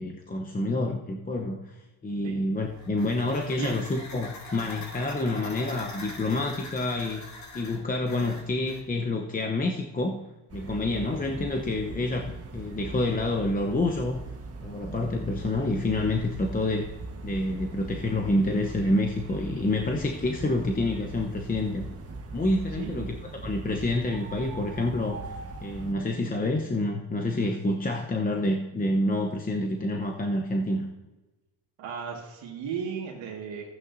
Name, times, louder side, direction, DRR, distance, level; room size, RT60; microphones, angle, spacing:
voice 1, 0.0-1.7 2.0-7.2 7.5-10.2 10.5-14.2 14.6-16.9 17.2-21.9 22.3-23.2 23.4-25.3 25.6-30.8, left 2 dB, 20° left, 2 dB, 0.8 m, -28 dB
sound 1, 2.6-8.9, left 2 dB, 35° left, 1.8 m, -43 dB
sound 2, 10.5-25.9, right 2 dB, 30° right, 1.4 m, -40 dB
voice 2, 22.7-23.1 31.8-33.7, right 6 dB, 75° right, -3 dB, 1.9 m, -35 dB
14.5 x 9.0 x 2.6 m, 1.1 s
cardioid pair, 115°, 47 cm